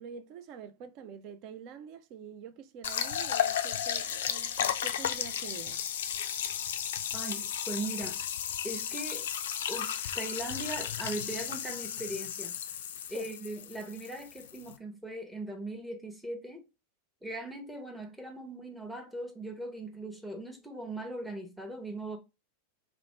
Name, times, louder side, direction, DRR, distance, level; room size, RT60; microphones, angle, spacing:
voice 1, 0.0-5.8 13.1-13.3, right 7 dB, 40° right, 0.4 m, -46 dB
sound 1, 2.8-14.7, left 9 dB, 60° left, 0.3 m, -34 dB
voice 2, 7.1-8.2 8.6-9.3 9.7-12.5 13.1-16.6 17.2-22.2, right 2 dB, 5° right, 0.7 m, -39 dB
2.9 x 2.1 x 2.8 m
figure-of-eight pair, 90°, 0 cm